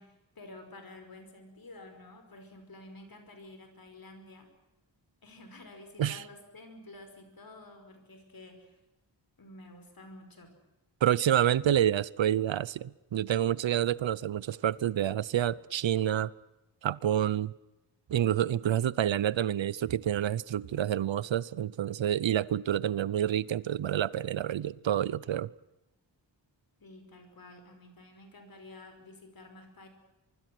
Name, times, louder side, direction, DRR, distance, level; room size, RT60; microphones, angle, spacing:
voice 1, 0.0-4.5 5.2-8.8 9.4-10.6 18.4-18.7 26.8-29.9, left 2 dB, 50° left, 5.4 m, -51 dB
voice 2, 11.0-16.3 16.8-17.5 18.1-25.5, right 10 dB, 85° right, 0.8 m, -28 dB
24.5 x 24.0 x 6.2 m
wide cardioid pair, 165°, 44 cm